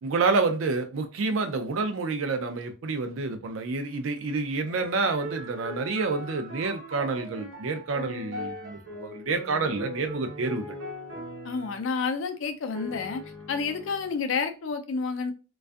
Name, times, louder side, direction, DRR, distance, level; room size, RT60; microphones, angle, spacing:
voice 1, 0.0-10.7, right 3 dB, 80° right, 0.4 m, -28 dB
sound 1, 4.7-11.9 12.7-14.2, left 1 dB, 60° right, 0.8 m, -40 dB
voice 2, 11.4-13.2 13.5-15.3, left 5 dB, 70° left, 0.4 m, -29 dB
2.5 x 2.3 x 2.3 m
head